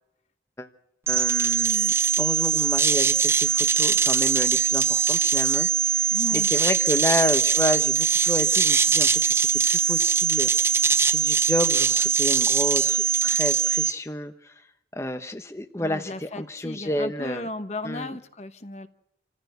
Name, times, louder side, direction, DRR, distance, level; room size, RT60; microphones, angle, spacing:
voice 1, 1.1-10.8 11.0-14.5 14.9-17.5 17.8-18.2, left 1 dB, 15° left, 7 dB, 1.0 m, -30 dB
sound 1, 1.1-13.9, right 6 dB, 15° right, 0.8 m, -22 dB
voice 2, 6.1-6.5 15.8-18.9, left 1 dB, 40° left, 10 dB, 1.1 m, -35 dB
27.5 x 15.0 x 8.1 m, 0.82 s
head